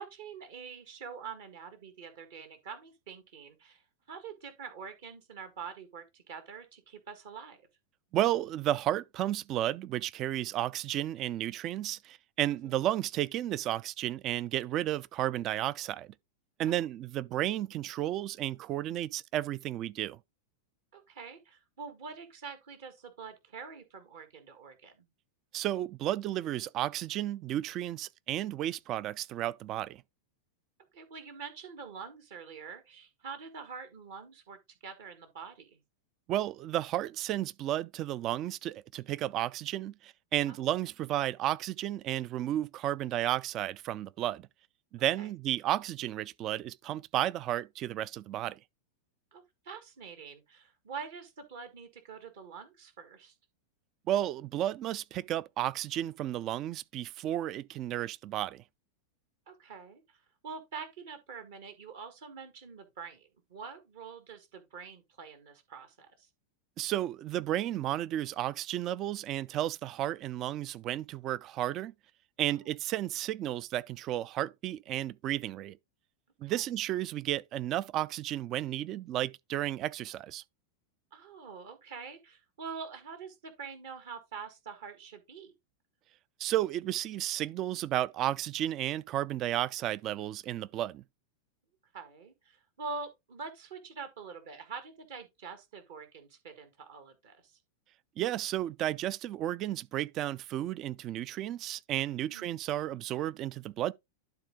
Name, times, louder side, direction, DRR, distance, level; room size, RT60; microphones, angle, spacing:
voice 1, 0.0-3.8 4.1-7.6 12.6-12.8 16.6-16.8 20.9-25.1 30.9-35.8 40.5-40.7 45.2-45.3 49.3-53.3 59.5-66.3 72.5-72.7 76.4-76.6 81.1-85.5 91.9-97.6 102.2-102.5, right 5 dB, 55° right, 1.6 m, -45 dB
voice 2, 8.1-16.1 16.6-20.2 25.5-30.0 36.3-44.5 44.9-48.6 54.1-58.6 66.8-71.9 72.4-75.8 76.4-80.4 86.4-91.0 98.2-103.9, right 13 dB, 35° right, 0.4 m, -33 dB
11.5 x 3.9 x 3.7 m
figure-of-eight pair, 90°, 0 cm